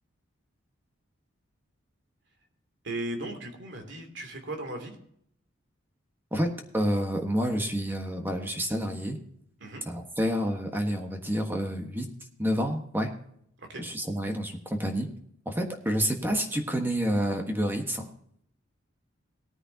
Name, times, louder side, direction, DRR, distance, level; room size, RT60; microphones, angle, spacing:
voice 1, 2.8-5.0 9.6-9.8 13.6-13.8, right 1 dB, 60° right, 4 dB, 2.9 m, -37 dB
voice 2, 6.3-9.2 9.9-12.1 12.4-13.1 13.8-15.1 15.4-18.1, equal, 10° right, 3 dB, 1.4 m, -29 dB
18.5 x 9.8 x 2.8 m, 0.68 s
head